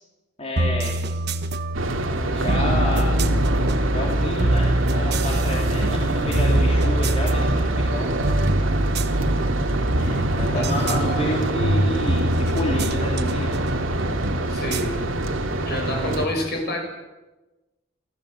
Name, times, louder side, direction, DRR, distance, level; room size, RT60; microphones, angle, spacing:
voice 1, 0.4-1.0 2.2-3.1 3.8-8.7 10.0-13.5, left 1 dB, 30° left, -3 dB, 3.4 m, -30 dB
sound 1, 0.6-15.8, right 1 dB, 55° right, 1.2 m, -24 dB
sound 2, 1.7-16.3, right 1 dB, 80° right, 2.5 m, -25 dB
voice 2, 10.5-11.1 14.5-15.0 15.7-16.8, left 1 dB, 55° left, 3 dB, 6.5 m, -28 dB
28.5 x 14.5 x 7.6 m, 1.1 s
head